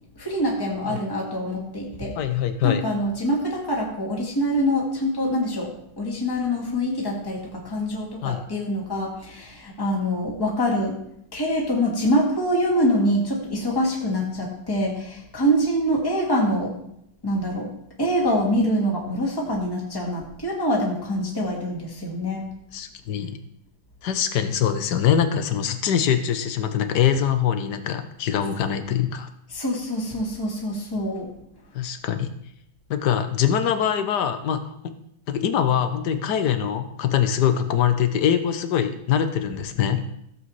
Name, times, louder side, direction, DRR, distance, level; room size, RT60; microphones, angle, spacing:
voice 1, 0.2-2.1 2.6-5.7 6.0-11.0 11.3-16.8 17.2-17.7 18.0-22.5 29.5-31.3, equal, 10° left, -2 dB, 1.9 m, -25 dB
voice 2, 2.1-2.8 8.2-8.4 22.7-23.4 24.0-29.3 31.7-32.3 32.9-34.9 35.3-40.2, left 9 dB, 60° left, 9 dB, 1.2 m, -23 dB
15.5 x 7.8 x 3.2 m, 0.73 s
omnidirectional pair, 2.4 m